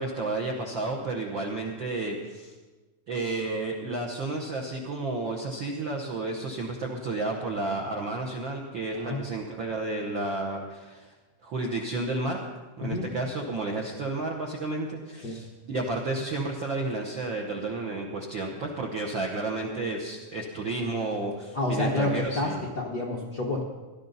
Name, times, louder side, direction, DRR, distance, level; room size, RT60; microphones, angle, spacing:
voice 1, 0.0-2.5 3.1-11.1 11.4-12.4 12.8-22.6, right 2 dB, 85° right, 0 dB, 1.0 m, -31 dB
voice 2, 21.5-23.6, left 2 dB, 70° left, -3 dB, 0.9 m, -29 dB
17.5 x 12.0 x 4.0 m, 1.2 s
omnidirectional pair, 3.8 m